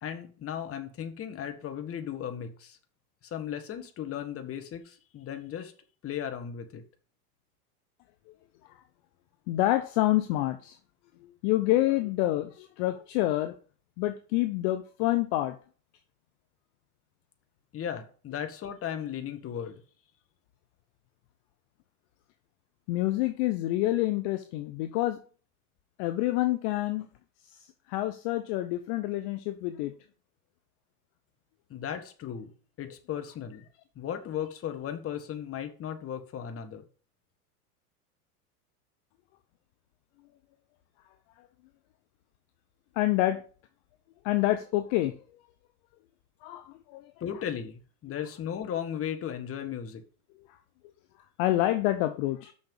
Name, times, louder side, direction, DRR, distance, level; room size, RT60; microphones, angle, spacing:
voice 1, 0.0-2.8 3.2-5.7 6.0-6.8 17.7-19.8 31.7-32.5 32.8-33.6 33.9-36.8 47.2-50.0, left 9 dB, 30° left, 7 dB, 1.7 m, -36 dB
voice 2, 9.5-10.8 11.4-13.6 14.0-15.6 22.9-25.2 26.0-27.1 27.9-29.9 43.0-43.4 44.2-45.1 46.4-47.0 51.4-52.5, left 16 dB, 50° left, 10 dB, 0.9 m, -27 dB
6.4 x 6.4 x 7.2 m, 0.41 s
hypercardioid pair, 100°, 45 cm